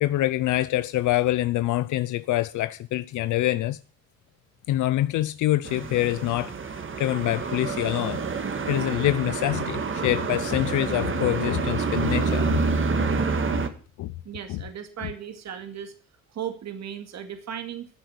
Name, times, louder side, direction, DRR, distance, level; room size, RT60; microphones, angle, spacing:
voice 1, 0.0-3.8 4.7-12.6 13.0-13.1 13.5-13.6 14.0-14.1 14.5-14.6, left 15 dB, 80° left, 0.6 m, -26 dB
sound 1, 5.6-13.7, right 4 dB, 40° right, 2.0 m, -27 dB
voice 2, 14.2-15.9 16.3-17.9, right 9 dB, 60° right, 2.3 m, -36 dB
14.0 x 8.0 x 8.0 m
cardioid pair, 90°, 30 cm